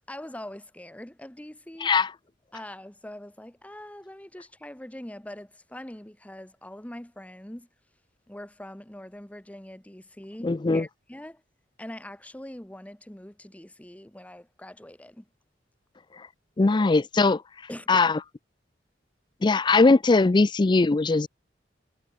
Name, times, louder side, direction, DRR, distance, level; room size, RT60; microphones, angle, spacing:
voice 1, 0.1-1.9 2.5-7.7 8.3-11.4 11.8-15.3 17.7-18.0, left 1 dB, 10° left, 1.0 m, -43 dB
voice 2, 1.8-2.1 10.4-10.9 16.2-16.3 16.6-17.4 17.9-18.2 19.4-21.3, left 3 dB, 25° left, 0.4 m, -20 dB
head